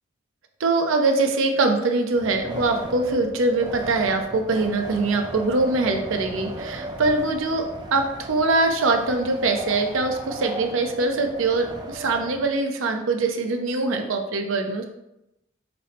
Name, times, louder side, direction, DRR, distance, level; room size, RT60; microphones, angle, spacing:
voice 1, 0.6-14.8, right 3 dB, 85° right, 4 dB, 0.6 m, -23 dB
Wind, 2.1-12.5, right 1 dB, 20° right, 0.4 m, -36 dB
5.4 x 2.1 x 4.2 m, 0.89 s
head